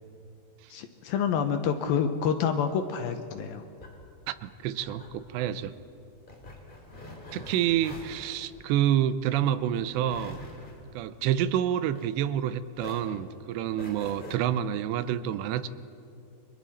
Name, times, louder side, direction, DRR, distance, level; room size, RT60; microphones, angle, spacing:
voice 1, 0.7-3.6, left 7 dB, 75° left, 7 dB, 2.4 m, -28 dB
sound 1, 3.6-12.4 12.7-14.4, left 1 dB, 15° left, 2.7 m, -46 dB
voice 2, 4.3-5.7 7.3-10.4 10.9-15.7, right 10 dB, 85° right, 13 dB, 2.9 m, -28 dB
30.0 x 24.5 x 4.2 m, 2.6 s
omnidirectional pair, 4.9 m